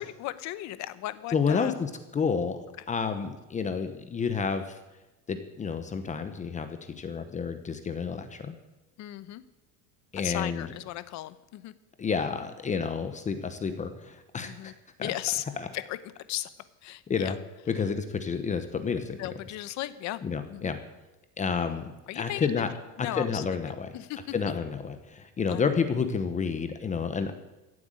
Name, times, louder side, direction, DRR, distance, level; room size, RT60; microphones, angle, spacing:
voice 1, 0.0-1.7 9.0-9.4 10.2-11.7 14.4-14.7 15.0-15.4 15.7-16.0 16.3-16.5 16.8-17.4 19.2-20.2 20.5-20.8 22.1-22.5 23.0-23.6 23.9-24.2 25.5-25.6, left 15 dB, 45° left, 14 dB, 0.9 m, -36 dB
voice 2, 1.3-2.6 2.9-4.6 5.3-8.5 10.1-10.7 12.0-14.7 15.0-15.1 15.6-15.7 17.1-17.4 17.7-19.2 20.2-20.8 21.4-22.7 23.0-23.9 24.3-27.3, left 5 dB, 20° left, 8 dB, 0.9 m, -30 dB
14.5 x 8.0 x 9.0 m, 1.0 s
cardioid pair, 150°, 39 cm